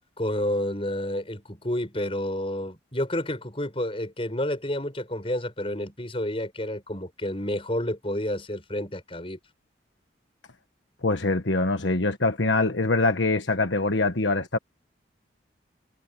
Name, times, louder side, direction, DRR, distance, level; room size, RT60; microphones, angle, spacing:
voice 1, 0.2-9.4, left 1 dB, 30° left, 6.2 m, -30 dB
voice 2, 11.0-14.6, left 2 dB, 75° left, 1.4 m, -24 dB
head